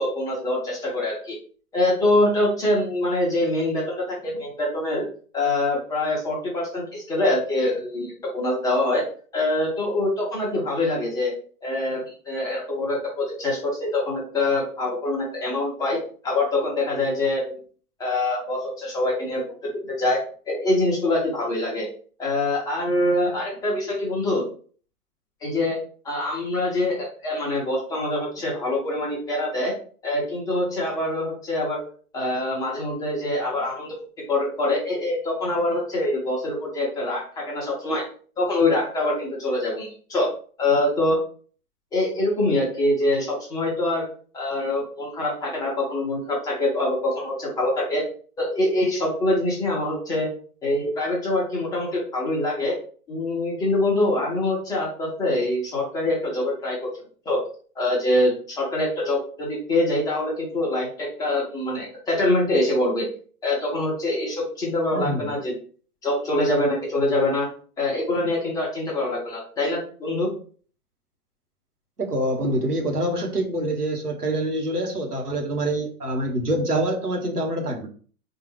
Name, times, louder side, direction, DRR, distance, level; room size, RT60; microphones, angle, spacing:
voice 1, 0.0-1.4 1.7-5.0 5.3-9.0 9.3-11.3 11.6-17.6 18.0-19.4 19.9-21.9 22.2-24.4 25.4-25.8 26.0-29.7 30.0-31.8 32.1-38.1 38.4-40.3 40.6-41.2 41.9-44.1 44.3-48.0 48.4-50.3 50.6-52.8 53.1-56.8 57.2-57.4 57.8-63.1 63.4-65.5 66.0-67.5 67.8-70.3, left 1 dB, 10° left, -4 dB, 0.6 m, -24 dB
voice 2, 64.9-65.3 72.0-77.9, right 1 dB, 85° right, 2 dB, 1.1 m, -25 dB
4.0 x 2.3 x 3.2 m, 0.43 s
figure-of-eight pair, 110°, 45 cm